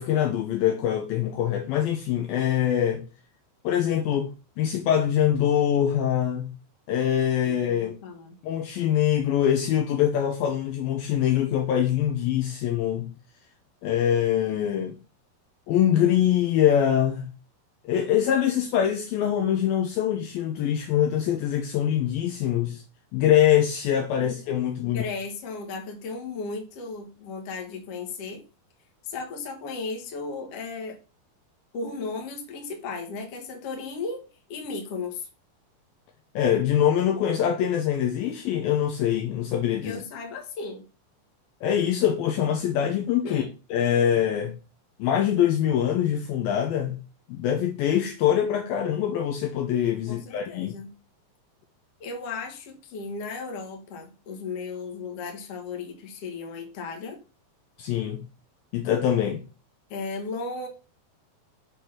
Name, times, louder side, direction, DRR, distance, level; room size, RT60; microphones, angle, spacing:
voice 1, 0.0-3.0 3.6-4.3 4.6-6.5 6.9-7.9 8.4-13.1 13.8-15.0 15.7-17.3 17.9-22.8 23.1-25.0 36.4-40.0 41.6-43.4 43.7-44.5 45.0-47.0 47.3-50.8 57.8-58.2 58.7-59.4, left 10 dB, 75° left, 2.5 m, -24 dB
voice 2, 7.4-8.4 24.8-28.4 29.0-31.0 31.7-35.3 39.8-40.9 43.2-43.5 50.1-50.9 52.0-57.2 59.9-60.7, left 4 dB, 50° left, 2.2 m, -35 dB
6.4 x 5.1 x 6.1 m
omnidirectional pair, 4.7 m